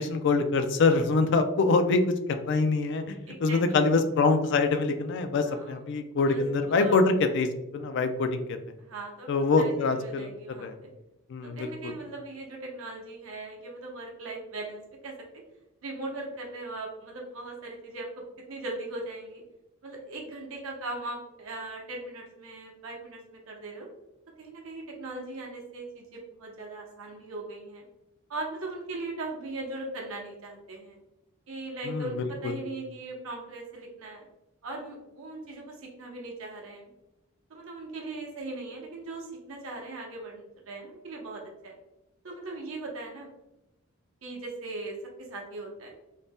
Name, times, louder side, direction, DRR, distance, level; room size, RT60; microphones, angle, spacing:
voice 1, 0.0-7.5 7.7-8.6 9.3-10.3 10.6-10.8 11.3-12.0 31.8-32.1 32.4-32.6, left 3 dB, 55° left, 8 dB, 0.3 m, -25 dB
voice 2, 3.3-3.9 5.4-5.8 6.3-7.0 8.8-9.3 9.5-10.9 11.4-15.1 15.8-19.4 19.8-23.9 24.4-27.8 28.3-31.0 31.5-34.2 34.6-36.9 37.5-41.7 42.2-43.3 44.2-45.9, right 2 dB, 75° right, -1 dB, 0.7 m, -39 dB
2.6 x 2.0 x 3.3 m, 0.93 s
head